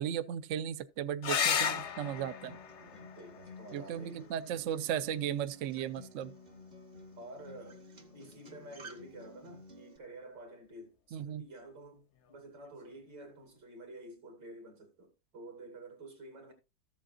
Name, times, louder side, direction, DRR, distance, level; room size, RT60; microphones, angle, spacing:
voice 1, 0.0-2.6 3.7-6.3 11.1-11.5, right 9 dB, 85° right, 0.6 m, -36 dB
sound 1, 1.2-6.2 8.1-8.8 12.2-12.3 12.7-12.8, left 7 dB, 60° left, 0.7 m, -37 dB
Acoustic guitar, 2.0-10.0, left 1 dB, 30° right, 0.8 m, -53 dB
voice 2, 2.8-4.3 7.2-7.9 8.1-16.5, right 1 dB, 60° right, 3.0 m, -50 dB
14.0 x 7.4 x 2.5 m
omnidirectional pair, 2.1 m